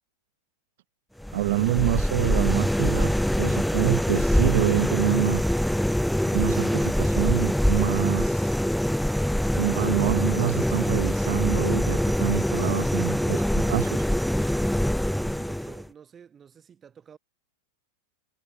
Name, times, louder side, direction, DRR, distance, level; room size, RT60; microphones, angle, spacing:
sound 1, 1.2-15.9, equal, ahead, 0.4 m, -24 dB
voice 1, 1.3-5.4 6.3-8.6 9.6-14.1, right 16 dB, 55° right, 0.6 m, -27 dB
voice 2, 15.1-17.2, right 7 dB, 20° right, 5.2 m, -50 dB
figure-of-eight pair, 90°, 0 cm